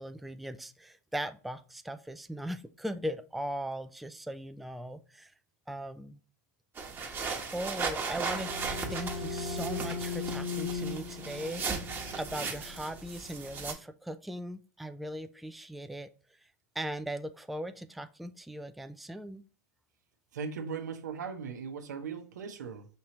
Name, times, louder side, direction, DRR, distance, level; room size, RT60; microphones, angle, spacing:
voice 1, 0.0-5.3 5.7-6.2 7.5-8.5 8.9-16.1 16.8-19.4, right 1 dB, ahead, 0.3 m, -39 dB
sound 1, 6.8-13.7, right 5 dB, 25° right, 1.1 m, -37 dB
sound 2, 8.0-13.4, left 4 dB, 60° left, 1.1 m, -38 dB
voice 2, 20.3-22.9, right 6 dB, 85° right, 0.8 m, -38 dB
5.3 x 3.0 x 2.8 m
hypercardioid pair, 110°, 9 cm